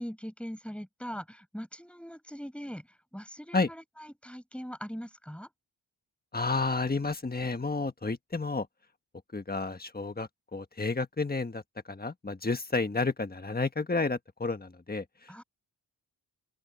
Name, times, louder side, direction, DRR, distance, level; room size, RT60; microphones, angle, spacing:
voice 1, 0.0-2.9 3.1-5.5 15.3-15.4, equal, 5° left, 7.5 m, -41 dB
voice 2, 6.3-8.7 9.3-11.6 11.9-15.4, left 3 dB, 20° left, 1.4 m, -31 dB
open air
wide cardioid pair, 95°, 43 cm